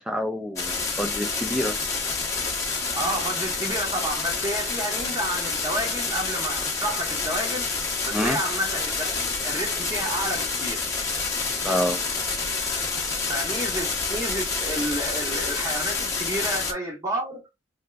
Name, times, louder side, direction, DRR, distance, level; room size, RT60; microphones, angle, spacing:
voice 1, 0.0-1.8 8.1-8.4 11.6-12.0, equal, 5° right, 0.5 m, -27 dB
sound 1, 0.6-16.7, left 4 dB, 15° left, 0.9 m, -28 dB
voice 2, 2.9-7.7 8.1-9.2 9.4-10.8 13.3-17.5, right 1 dB, 20° right, 0.9 m, -30 dB
3.3 x 2.8 x 2.3 m
head